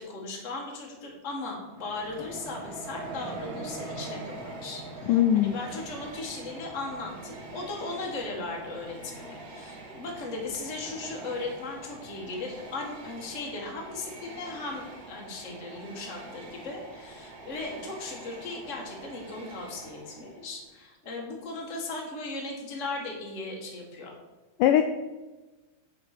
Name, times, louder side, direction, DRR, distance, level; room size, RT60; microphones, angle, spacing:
voice 1, 0.0-24.1, left 3 dB, 35° left, -1 dB, 1.3 m, -37 dB
Train, 1.7-20.6, right 2 dB, 70° right, 0.9 m, -43 dB
voice 2, 5.1-5.6 24.6-24.9, left 11 dB, 80° left, 7 dB, 1.9 m, -20 dB
10.0 x 4.4 x 6.6 m, 1.2 s
omnidirectional pair, 4.0 m